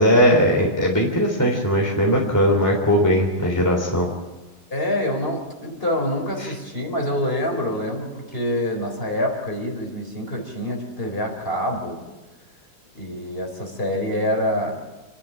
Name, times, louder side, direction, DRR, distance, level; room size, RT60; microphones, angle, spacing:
voice 1, 0.0-4.1 6.4-6.5, equal, 10° left, -1 dB, 3.6 m, -19 dB
voice 2, 4.7-12.0 12.9-14.7, left 1 dB, 25° left, 1 dB, 4.3 m, -26 dB
29.0 x 11.5 x 9.0 m, 1.1 s
omnidirectional pair, 2.3 m